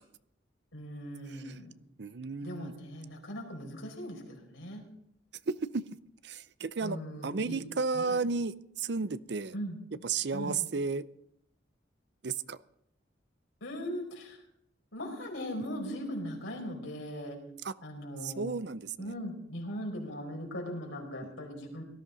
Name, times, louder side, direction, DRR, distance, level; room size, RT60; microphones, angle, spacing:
voice 1, 0.7-1.7 2.4-4.8 6.8-7.6 7.9-8.2 9.5-9.8 10.3-10.6 13.6-14.4 14.9-17.4 17.8-18.6 19.0-21.8, equal, 85° left, 0 dB, 4.7 m, -39 dB
voice 2, 2.0-2.7 5.5-5.8 6.2-7.0 7.2-9.5 10.0-11.0 12.2-12.6 17.6-17.7 18.2-19.1, right 4 dB, 60° right, 16 dB, 0.5 m, -33 dB
18.0 x 13.5 x 4.0 m, 0.73 s
head